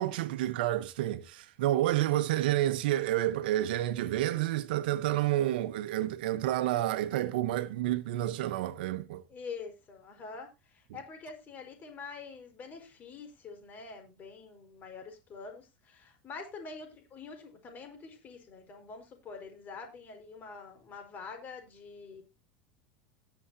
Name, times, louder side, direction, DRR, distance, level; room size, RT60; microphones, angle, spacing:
voice 1, 0.0-9.2, right 14 dB, 80° right, 0.9 m, -29 dB
voice 2, 9.3-22.2, left 4 dB, 35° left, 4.7 m, -46 dB
19.0 x 7.0 x 2.8 m
supercardioid pair, 115°, 5 cm